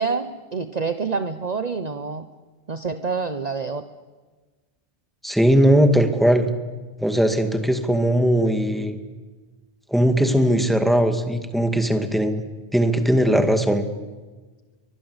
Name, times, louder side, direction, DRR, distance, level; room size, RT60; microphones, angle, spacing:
voice 1, 0.0-2.3 2.7-3.8, right 5 dB, 40° right, 9 dB, 1.1 m, -27 dB
voice 2, 5.2-6.5 7.0-9.0 9.9-12.5 12.7-13.9, equal, ahead, 6 dB, 2.2 m, -19 dB
30.0 x 23.5 x 8.1 m, 1.3 s
omnidirectional pair, 1.1 m